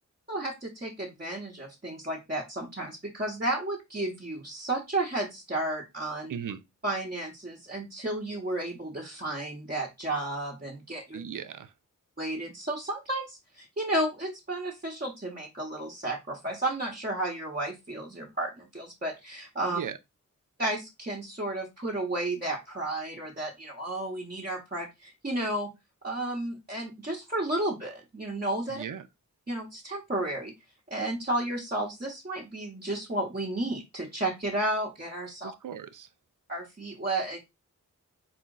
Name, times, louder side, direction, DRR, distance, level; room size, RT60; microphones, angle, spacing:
voice 1, 0.3-6.3 6.8-11.2 12.2-19.8 20.6-25.7 26.0-28.8 29.5-30.5 30.9-35.5 36.5-37.4, right 1 dB, 30° right, 1.1 m, -32 dB
voice 2, 11.1-11.7 19.7-20.0 28.7-29.0 35.4-36.1, right 8 dB, 70° right, 0.5 m, -37 dB
4.3 x 2.4 x 3.8 m
cardioid pair, 55°, 33 cm